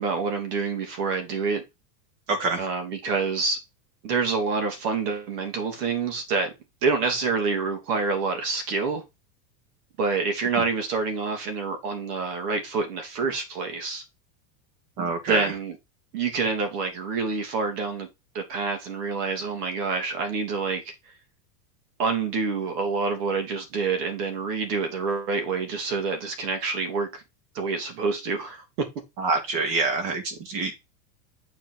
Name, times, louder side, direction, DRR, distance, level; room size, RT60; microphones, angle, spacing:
voice 1, 0.0-1.6 2.6-3.6 4.0-6.5 6.8-9.0 10.0-14.0 15.0-15.8 16.1-18.1 18.3-21.1 22.0-27.2 27.5-28.9, right 4 dB, 70° right, 3.0 m, -27 dB
voice 2, 2.3-2.6 15.0-15.5 29.2-30.7, right 3 dB, 40° right, 2.3 m, -26 dB
7.6 x 4.7 x 4.5 m
supercardioid pair, 175°, 49 cm